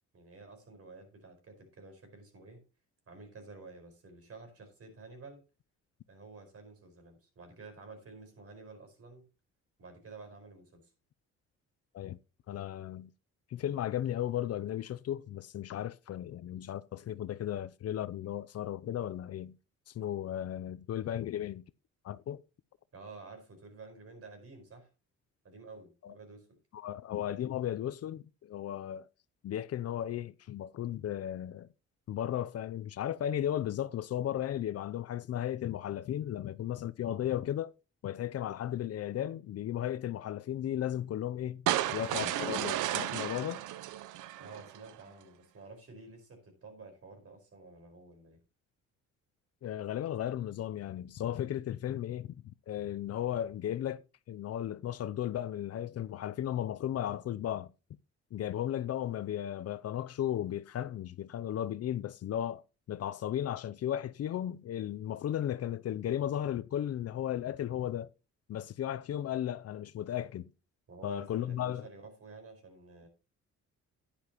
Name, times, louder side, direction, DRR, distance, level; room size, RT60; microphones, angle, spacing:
voice 1, 0.1-2.6 3.1-5.4 6.1-9.2 9.8-10.9 22.9-24.9 25.4-26.6 44.4-48.4 70.9-73.1, right 3 dB, 50° right, 4.8 m, -51 dB
voice 2, 12.5-13.1 13.5-19.6 19.9-21.6 22.0-22.4 26.0-26.1 26.7-29.1 29.4-31.7 32.1-37.7 38.0-41.6 41.9-43.6 49.6-52.3 52.7-57.7 58.3-62.6 62.9-68.1 68.5-70.5 71.0-71.9, left 11 dB, 55° left, 0.5 m, -35 dB
sound 1, 41.7-44.9, right 13 dB, 90° right, 0.7 m, -33 dB
10.5 x 10.0 x 3.0 m
cardioid pair, 90°, 30 cm